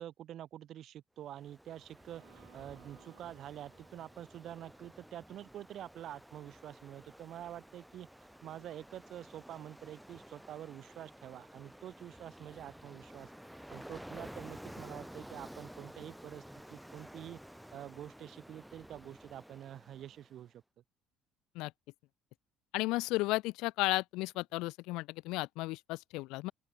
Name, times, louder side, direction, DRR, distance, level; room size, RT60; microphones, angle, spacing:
voice 1, 0.0-8.1 8.4-13.3 13.7-17.4 17.7-20.6, right 11 dB, 45° right, 3.8 m, -47 dB
Ocean, 1.3-20.4, equal, ahead, 2.0 m, -52 dB
Bowed string instrument, 2.0-6.0, right 21 dB, 80° right, 5.6 m, -65 dB
voice 2, 22.7-26.5, left 21 dB, 75° left, 0.7 m, -34 dB
open air
cardioid pair, 160°, 0 cm